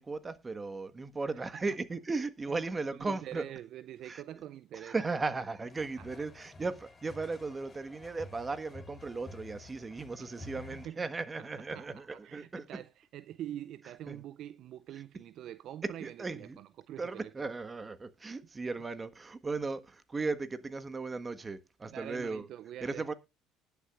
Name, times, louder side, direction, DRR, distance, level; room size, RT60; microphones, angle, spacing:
voice 1, 0.0-3.4 4.0-4.2 4.7-12.8 14.1-14.2 15.8-16.6 17.0-22.5 22.8-23.1, right 3 dB, 25° right, 1.4 m, -36 dB
voice 2, 3.0-4.9 6.0-6.1 10.2-11.1 11.4-11.5 11.7-17.3 21.9-23.1, right 12 dB, 60° right, 0.5 m, -45 dB
sound 1, 5.7-10.9, left 3 dB, 25° left, 3.8 m, -51 dB
19.5 x 7.0 x 2.4 m
hypercardioid pair, 65°, 0 cm